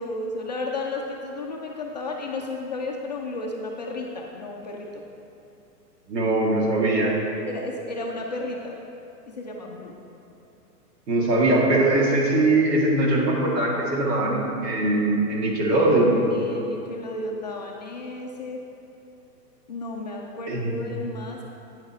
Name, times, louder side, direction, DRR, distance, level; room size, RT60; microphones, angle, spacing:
voice 1, 0.0-5.0 7.5-8.8 9.4-9.9 16.3-18.6 19.7-21.4, left 2 dB, 30° left, -1 dB, 0.4 m, -33 dB
voice 2, 6.1-7.2 11.1-16.2 20.5-20.8, right 2 dB, 80° right, -2 dB, 2.1 m, -21 dB
9.4 x 6.7 x 4.3 m, 2.8 s
hypercardioid pair, 145°, 48 cm